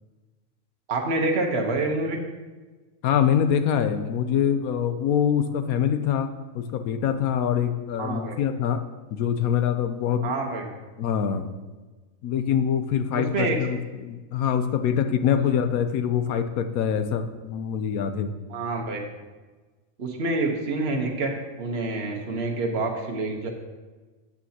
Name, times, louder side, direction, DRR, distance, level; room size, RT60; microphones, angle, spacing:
voice 1, 0.9-2.2 8.0-8.3 10.2-10.7 13.2-13.6 15.3-15.4 18.5-19.0 20.0-23.5, right 2 dB, 50° right, 2 dB, 1.3 m, -27 dB
voice 2, 3.0-6.3 6.5-8.8 9.1-10.4 11.0-11.5 12.2-18.3, left 8 dB, 85° left, 9 dB, 1.1 m, -24 dB
12.5 x 7.3 x 2.8 m, 1.3 s
omnidirectional pair, 1.5 m